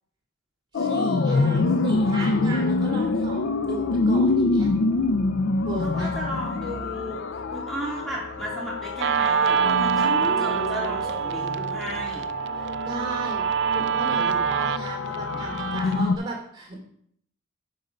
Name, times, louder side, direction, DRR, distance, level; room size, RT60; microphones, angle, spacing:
sound 1, 0.7-16.2, left 3 dB, 60° left, 0.4 m, -26 dB
voice 1, 0.7-4.7 5.6-6.1 12.5-13.5 13.7-16.8, right 2 dB, 20° right, -1 dB, 2.8 m, -35 dB
sound 2, 1.5-16.2, right 1 dB, 40° right, 1.3 m, -46 dB
voice 2, 5.8-7.2 7.5-12.2 15.8-15.9, equal, ahead, -6 dB, 2.8 m, -34 dB
Guitar, 9.0-16.0, right 7 dB, 55° right, 0.4 m, -25 dB
8.7 x 5.4 x 5.3 m, 0.67 s
head